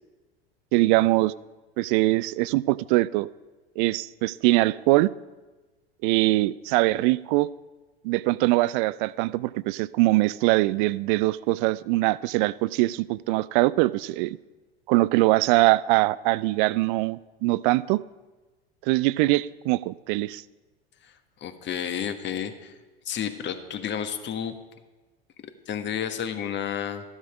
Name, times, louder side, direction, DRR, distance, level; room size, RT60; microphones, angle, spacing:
voice 1, 0.7-1.3 1.8-3.3 3.8-5.1 6.0-7.5 8.0-14.4 14.9-18.0 18.8-20.4, right 19 dB, 55° right, 0.5 m, -22 dB
voice 2, 21.4-22.7 23.1-24.6 25.7-27.0, left 8 dB, 35° left, 1.3 m, -31 dB
13.0 x 11.0 x 5.0 m
hypercardioid pair, 80°, 31 cm